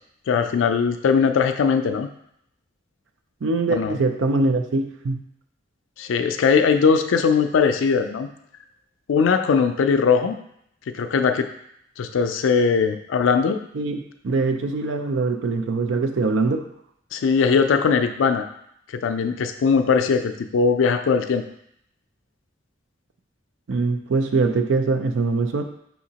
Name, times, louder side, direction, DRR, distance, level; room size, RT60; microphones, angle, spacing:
voice 1, 0.3-2.1 3.7-4.0 6.0-8.3 9.1-10.4 10.9-11.5 12.0-13.6 17.1-18.5 18.9-21.4, left 5 dB, 85° left, 8 dB, 0.4 m, -20 dB
voice 2, 3.4-5.2 13.7-16.6 23.7-25.6, right 3 dB, 80° right, 6 dB, 0.4 m, -23 dB
5.5 x 2.9 x 2.8 m, 0.74 s
head